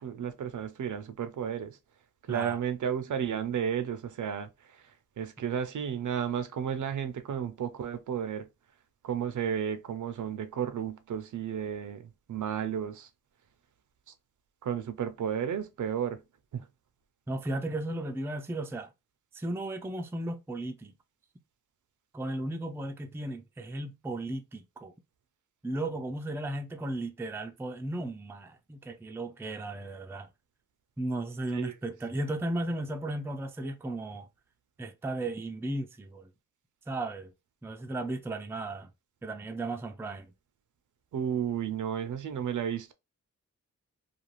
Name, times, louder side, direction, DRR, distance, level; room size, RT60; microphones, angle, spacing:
voice 1, 0.0-1.8 2.3-4.5 5.2-8.5 9.0-12.0 12.3-13.1 14.6-16.2 16.5-16.6 31.5-31.7 41.1-42.9, right 8 dB, 65° right, 0.5 m, -32 dB
voice 2, 2.3-2.6 17.3-18.9 19.3-20.9 22.1-24.9 25.6-30.3 31.0-34.3 34.8-36.3 36.9-37.3 37.6-38.9 39.2-40.3, right 2 dB, 10° right, 0.4 m, -35 dB
2.4 x 2.3 x 3.0 m
cardioid pair, 75°, 33 cm